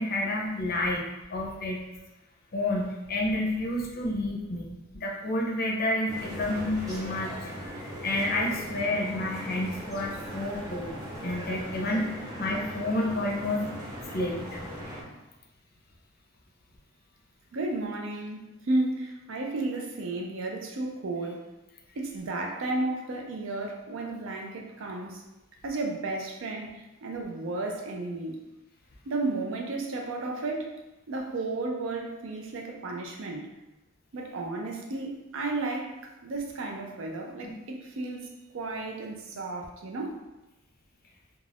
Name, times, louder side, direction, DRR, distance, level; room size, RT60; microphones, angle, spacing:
voice 1, 0.0-1.8 2.5-11.0 11.2-13.6 14.1-14.4 37.4-37.5, left 1 dB, 45° left, -1 dB, 0.5 m, -30 dB
sound 1, 6.1-15.0, equal, 15° right, 0.8 m, -39 dB
voice 2, 17.5-21.4 22.0-25.2 25.6-28.4 29.1-30.7 31.1-33.5 34.1-35.9 36.2-38.3 38.5-40.2, right 2 dB, 65° right, 1 dB, 0.5 m, -33 dB
2.4 x 2.3 x 3.3 m, 1.0 s
head